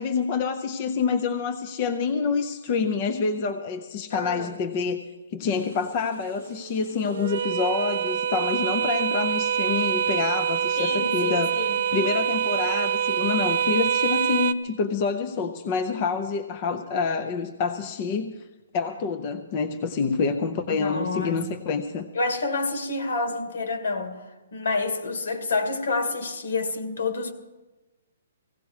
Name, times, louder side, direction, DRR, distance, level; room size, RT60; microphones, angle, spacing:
voice 1, 0.0-5.0 5.3-11.5 11.9-18.3 18.7-22.1, left 5 dB, 25° left, 0.6 m, -27 dB
voice 2, 4.1-4.6 10.8-11.8 20.7-21.5 22.1-24.2 24.5-27.3, left 3 dB, 70° left, 2.4 m, -28 dB
sound 1, 5.6-14.5, right 9 dB, 45° right, 0.5 m, -26 dB
17.5 x 16.5 x 4.8 m
hypercardioid pair, 175°, 0 cm